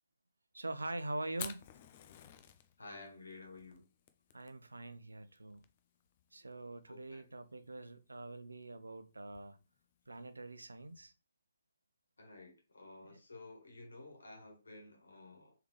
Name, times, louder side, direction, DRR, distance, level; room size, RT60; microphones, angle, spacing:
voice 1, 0.5-1.7 4.3-5.6 6.3-9.6 10.1-11.1 13.0-13.2, right 2 dB, 85° right, 0.5 m, -44 dB
Fire, 1.3-11.1, left 9 dB, 40° left, 0.5 m, -54 dB
voice 2, 2.8-3.8 6.9-7.2 12.2-15.5, left 2 dB, 80° left, 1.6 m, -53 dB
3.4 x 3.4 x 3.2 m
figure-of-eight pair, 135°, 0 cm